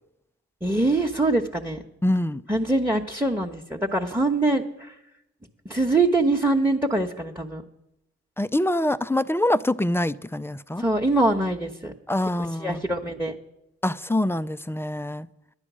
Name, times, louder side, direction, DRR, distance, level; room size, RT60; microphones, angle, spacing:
voice 1, 0.6-1.8 2.5-4.6 5.7-7.6 10.8-11.9 12.4-13.3, right 2 dB, 5° right, 1.1 m, -23 dB
voice 2, 2.0-2.4 8.4-10.8 12.1-12.8 13.8-15.3, left 1 dB, 10° left, 0.4 m, -25 dB
11.0 x 9.8 x 6.2 m
supercardioid pair, 40°, 30 cm